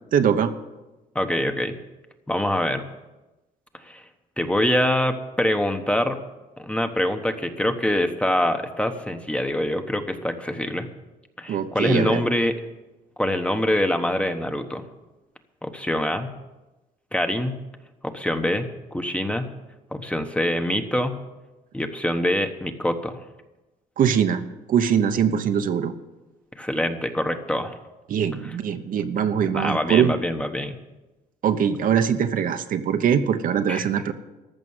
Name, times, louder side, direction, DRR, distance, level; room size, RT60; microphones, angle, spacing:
voice 1, 0.1-0.5 11.5-12.2 24.0-24.4 24.7-25.9 28.1-30.1 31.4-34.1, right 8 dB, 55° right, 8 dB, 1.0 m, -22 dB
voice 2, 1.1-1.8 2.3-2.9 3.8-4.0 4.4-6.2 6.6-10.9 11.4-12.6 13.2-14.8 15.6-16.3 17.1-17.6 18.0-19.5 19.9-21.2 21.7-23.2 26.6-27.8 28.4-28.5 29.5-30.8 33.7-33.8, left 1 dB, 5° left, 7 dB, 1.1 m, -24 dB
14.5 x 6.1 x 9.6 m, 1.1 s
cardioid pair, 110°, 17 cm